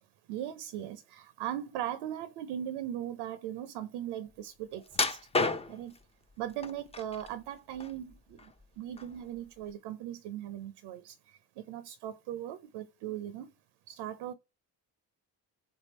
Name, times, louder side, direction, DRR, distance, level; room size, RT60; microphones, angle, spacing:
voice 1, 0.3-5.2 5.7-5.9 6.4-8.4 8.8-11.1 11.6-13.5 13.9-14.3, right 11 dB, 80° right, 0.5 m, -39 dB
sound 1, 4.9-6.0 6.6-7.3 7.7-8.6 9.0-9.2 9.7-9.8, left 3 dB, 15° left, 0.5 m, -31 dB
3.5 x 2.2 x 4.3 m
supercardioid pair, 55°, 43 cm